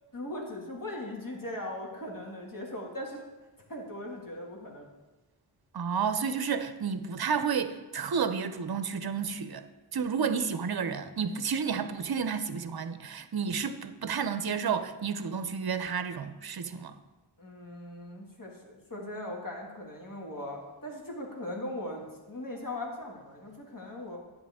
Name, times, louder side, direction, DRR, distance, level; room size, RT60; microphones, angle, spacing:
voice 1, 0.1-3.2 3.7-4.9 17.4-24.2, left 1 dB, 40° left, -1 dB, 2.2 m, -39 dB
voice 2, 5.7-9.6 9.9-17.0, right 6 dB, 50° right, 10 dB, 0.7 m, -31 dB
10.0 x 7.7 x 3.6 m, 1.1 s
wide cardioid pair, 55°, 49 cm